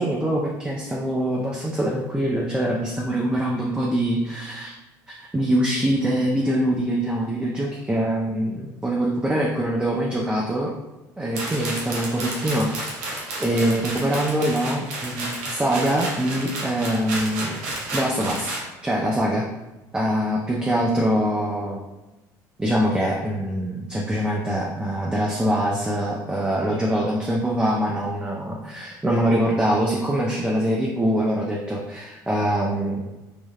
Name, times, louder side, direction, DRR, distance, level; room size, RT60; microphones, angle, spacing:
voice 1, 0.0-4.7 5.2-10.7 11.2-12.9 13.4-17.6 17.9-18.5 18.8-19.4 19.9-21.8 22.6-33.0, right 1 dB, 10° right, -3 dB, 0.4 m, -24 dB
sound 1, 11.3-18.6, right 2 dB, 90° right, 0.7 m, -31 dB
3.3 x 2.1 x 2.3 m, 1.1 s
supercardioid pair, 80°, 9 cm